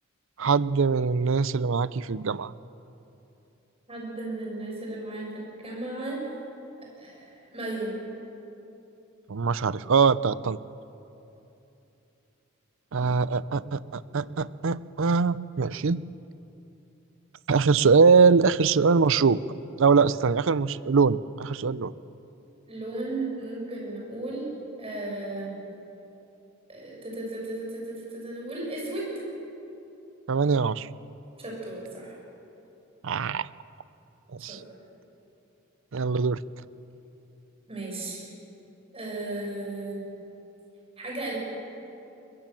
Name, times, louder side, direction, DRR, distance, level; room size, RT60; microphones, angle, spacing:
voice 1, 0.4-2.5 9.3-10.6 12.9-16.0 17.5-19.4 19.8-21.9 30.3-30.9 33.0-33.5 34.3-34.6 35.9-36.4, right 5 dB, 65° right, 18 dB, 0.6 m, -22 dB
voice 2, 3.9-5.3 5.6-6.2 7.0-8.0 22.7-24.5 24.8-25.5 26.7-29.1 31.4-32.2 34.5-34.6 37.7-38.3 38.9-40.0 41.0-41.4, right 2 dB, 30° right, -2 dB, 7.4 m, -35 dB
22.5 x 21.0 x 7.6 m, 2.9 s
head